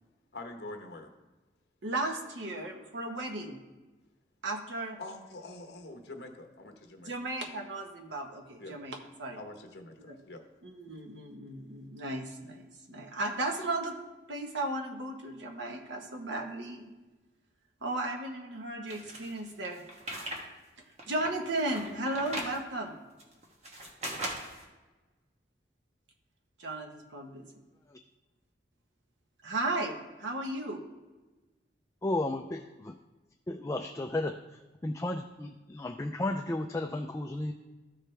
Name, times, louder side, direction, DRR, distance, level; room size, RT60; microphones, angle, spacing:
voice 1, 0.3-1.1 5.0-7.1 8.6-8.8 9.4-10.4, left 2 dB, 60° left, 4 dB, 1.0 m, -45 dB
voice 2, 1.8-3.6 4.4-5.0 7.0-9.4 10.0-10.2 10.6-14.0 14.3-16.9 17.8-19.8 21.1-23.0 26.6-27.5 29.4-30.8, right 2 dB, 80° right, 3 dB, 1.2 m, -35 dB
sound 1, 18.9-20.4 20.8-22.6 23.2-24.6, right 1 dB, 35° right, 1.2 m, -39 dB
voice 3, 32.0-33.0 33.5-37.5, left 2 dB, 15° left, 5 dB, 0.3 m, -34 dB
13.5 x 4.9 x 3.3 m, 1.2 s
head